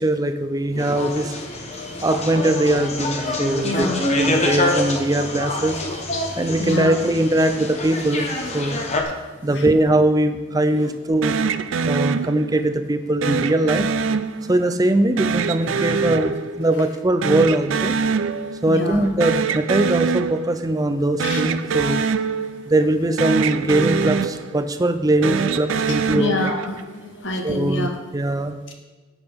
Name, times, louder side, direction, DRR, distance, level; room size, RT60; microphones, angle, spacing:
voice 1, 0.0-1.4 2.0-5.8 6.4-8.3 8.5-8.8 9.4-11.4 11.8-13.9 14.5-17.9 18.6-22.0 22.7-26.3 27.4-28.6, right 1 dB, 15° right, 8 dB, 0.5 m, -21 dB
sound 1, 0.8-9.0, left 2 dB, 30° left, 1.1 m, -26 dB
voice 2, 3.6-4.0 6.1-6.3 6.6-7.0 9.5-9.6 10.7-10.8 18.7-19.0 21.2-21.4 26.2-27.9, left 2 dB, 60° left, 3 dB, 1.2 m, -26 dB
sound 2, 11.2-12.7 13.2-14.8 15.2-17.0 17.2-18.7 19.0-20.7 21.1-22.9 23.2-24.8 25.1-26.9, right 5 dB, 70° right, 0.5 m, -24 dB
13.0 x 8.9 x 3.6 m, 1.3 s
head